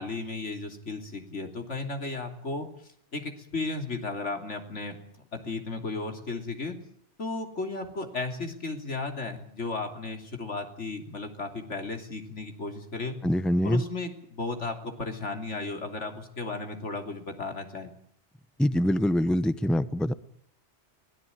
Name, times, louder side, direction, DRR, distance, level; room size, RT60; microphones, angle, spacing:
voice 1, 0.0-2.7 3.1-5.0 5.3-6.8 7.2-13.2 13.6-17.9, left 3 dB, 85° left, 4 dB, 3.5 m, -34 dB
voice 2, 13.2-13.8 18.6-20.1, equal, ahead, 13 dB, 0.7 m, -24 dB
23.5 x 18.0 x 9.4 m, 0.68 s
omnidirectional pair, 1.2 m